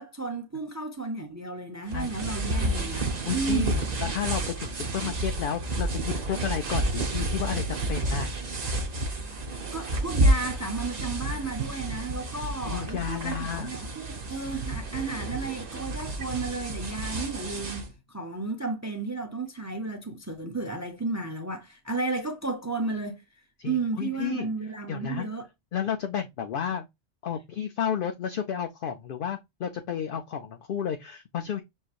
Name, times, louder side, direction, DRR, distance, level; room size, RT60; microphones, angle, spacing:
voice 1, 0.0-3.8 9.7-23.2 23.6-25.4, right 3 dB, 20° right, 0.5 m, -33 dB
sound 1, 1.9-17.9, right 1 dB, 40° right, 0.9 m, -30 dB
voice 2, 3.3-8.3 12.6-13.7 23.6-24.5 24.9-25.3 25.7-26.9 27.2-31.6, left 8 dB, 60° left, 0.6 m, -32 dB
6.3 x 3.2 x 2.4 m
omnidirectional pair, 1.2 m